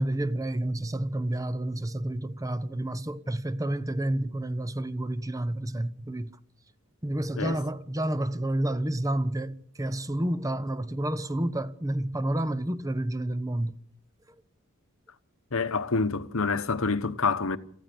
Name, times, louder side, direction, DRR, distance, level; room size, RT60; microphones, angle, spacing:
voice 1, 0.0-6.3 7.0-13.8, right 1 dB, 15° right, 0.8 m, -30 dB
voice 2, 15.5-17.6, left 4 dB, 70° left, 1.1 m, -27 dB
28.5 x 14.5 x 6.8 m
head